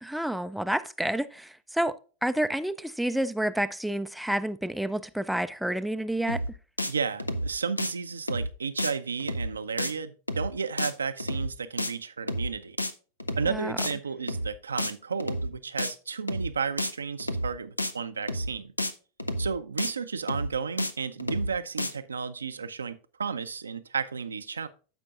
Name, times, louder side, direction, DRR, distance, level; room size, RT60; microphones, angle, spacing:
voice 1, 0.0-1.9 2.2-6.4 13.5-13.8, right 1 dB, ahead, 0.4 m, -29 dB
sound 1, 6.3-6.5 6.8-6.9 7.2-7.5 7.8-7.9 8.3-8.5 8.8-8.9 9.2-9.5 9.8-9.9 10.3-10.5 10.8-10.9 11.2-11.5 11.8-11.9 12.3-12.5 12.8-12.9 13.2-13.5 13.8-13.9 14.3-14.5 14.8-14.9 15.2-15.5 15.8-15.9 16.3-16.5 16.8-16.9 17.2-17.5 17.8-17.9 18.3-18.5 18.8-18.9 19.2-19.5 19.8-19.9 20.3-20.5 20.8-20.9 21.2-21.5 21.8-21.9, equal, 85° left, 0.5 m, -30 dB
voice 2, 6.9-12.8 13.4-18.7 19.4-24.7, right 5 dB, 75° right, 0.5 m, -33 dB
15.0 x 5.3 x 2.4 m
figure-of-eight pair, 90°, 0 cm